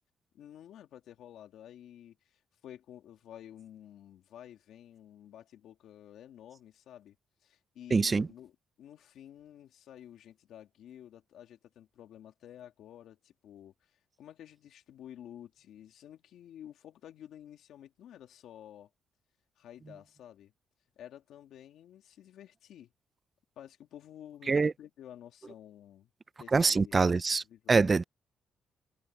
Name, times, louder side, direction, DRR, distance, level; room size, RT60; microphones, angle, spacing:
voice 1, 0.3-7.2 7.4-8.5 8.8-13.9 14.2-18.9 19.6-20.5 21.0-22.9 23.6-26.1 26.4-27.0 27.5-27.8, left 10 dB, 80° left, 2.3 m, -51 dB
voice 2, 7.9-8.3 24.5-24.7 26.5-28.0, right 4 dB, 35° right, 0.4 m, -25 dB
cardioid pair, 80°, 0 cm